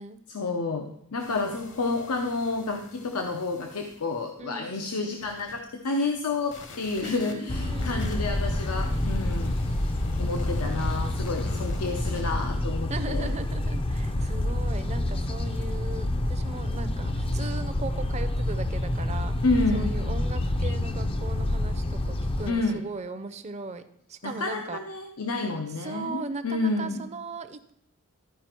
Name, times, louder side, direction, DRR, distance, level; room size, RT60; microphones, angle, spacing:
voice 1, 0.3-9.9 10.2-13.3 19.4-19.9 22.5-22.8 24.2-27.0, left 3 dB, 80° left, 4 dB, 0.8 m, -30 dB
sound 1, 1.2-4.3 5.1-5.6 6.0-12.3, left 2 dB, 60° left, 1.1 m, -44 dB
voice 2, 7.0-8.2 12.9-19.3 19.7-23.8 24.1-24.8 25.8-27.7, right 3 dB, 30° right, 10 dB, 0.6 m, -38 dB
sound 2, 7.5-22.5, left 1 dB, 25° left, 0.5 m, -28 dB
12.5 x 5.0 x 4.4 m, 0.74 s
head